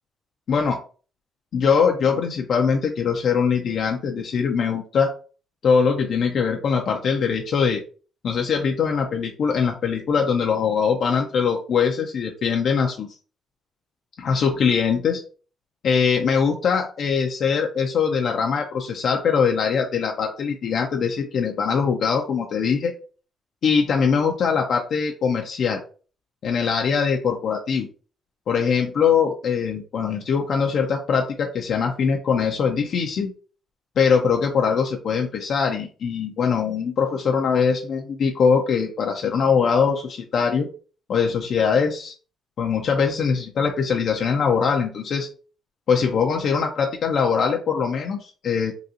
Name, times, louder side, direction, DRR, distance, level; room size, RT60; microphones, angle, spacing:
voice 1, 1.5-5.1 5.6-7.8 8.2-13.1 14.2-15.2 15.8-22.9 23.6-25.8 26.4-27.9 28.5-33.3 34.0-40.7 41.1-42.1 42.6-45.3 45.9-48.7, left 6 dB, 65° left, 1 dB, 0.5 m, -22 dB
3.8 x 2.3 x 2.7 m, 0.38 s
cardioid pair, 90°, 0 cm